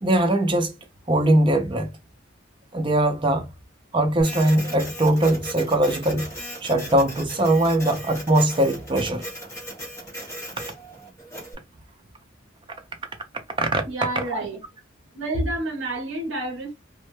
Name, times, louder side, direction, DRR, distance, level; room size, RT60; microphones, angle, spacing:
voice 1, 0.0-0.7 1.1-1.9 2.7-3.5 3.9-6.3 6.6-9.2 13.6-13.8 14.2-14.5, right 1 dB, 25° right, 0.4 m, -21 dB
Printer, 4.2-11.5, equal, 15° left, 0.8 m, -37 dB
voice 2, 13.9-14.6 15.1-16.8, right 1 dB, 65° right, 0.6 m, -29 dB
2.2 x 2.0 x 3.0 m
head